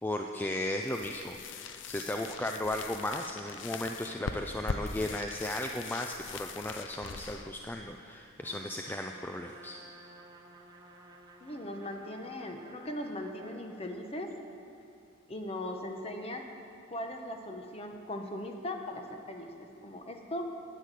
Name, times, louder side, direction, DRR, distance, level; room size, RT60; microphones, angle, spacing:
voice 1, 0.0-9.8, left 1 dB, 10° left, 3 dB, 0.4 m, -36 dB
sound 1, 0.8-8.6, left 4 dB, 65° left, 0.6 m, -42 dB
Trumpet, 8.4-13.7, right 2 dB, 20° right, 1.0 m, -54 dB
voice 2, 11.4-14.3 15.3-16.5 16.9-20.5, left 1 dB, 30° left, 4 dB, 1.0 m, -39 dB
10.0 x 9.2 x 8.1 m, 2.6 s
head